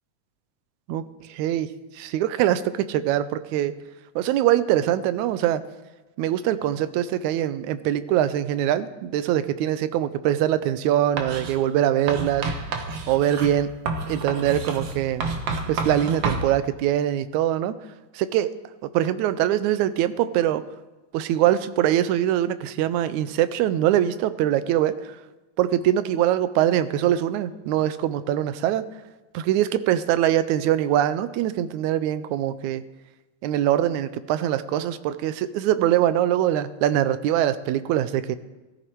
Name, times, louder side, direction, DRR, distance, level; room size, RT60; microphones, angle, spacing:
voice 1, 0.9-1.7 2.0-3.7 4.2-5.6 6.2-12.7 13.1-13.7 14.1-15.3 15.7-17.7 18.1-18.5 18.9-20.6 21.1-25.1 25.6-28.8 29.3-32.8 33.4-38.4, right 12 dB, 80° right, 14 dB, 1.9 m, -23 dB
Writing, 11.2-11.6 12.1-16.5, right 3 dB, 60° right, 2.1 m, -29 dB
16.5 x 14.0 x 4.6 m, 1.1 s
omnidirectional pair, 3.6 m